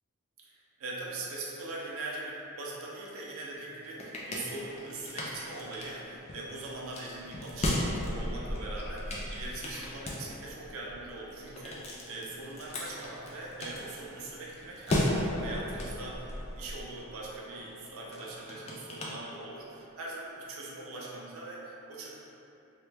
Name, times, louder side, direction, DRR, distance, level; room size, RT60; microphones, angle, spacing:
voice 1, 0.4-22.1, right 2 dB, 70° right, -4 dB, 0.4 m, -41 dB
sound 1, 3.6-19.8, left 1 dB, 30° left, 0.3 m, -37 dB
3.0 x 2.2 x 3.2 m, 2.8 s
head